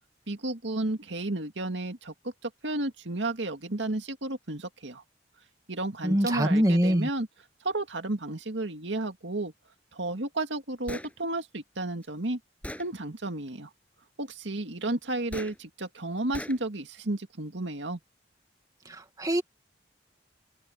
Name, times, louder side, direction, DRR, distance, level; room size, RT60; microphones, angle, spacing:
voice 1, 0.3-2.1 2.4-5.0 5.7-7.3 7.6-9.5 9.9-12.4 12.8-13.7 14.2-18.0, right 2 dB, 80° right, 2.2 m, -32 dB
voice 2, 6.0-7.1 18.9-19.4, equal, 20° right, 1.9 m, -24 dB
Gunshot gunfire, 10.9-11.1 12.0-12.1 12.6-12.9 15.3-15.5 16.3-16.6, left 1 dB, 5° left, 6.4 m, -38 dB
open air
head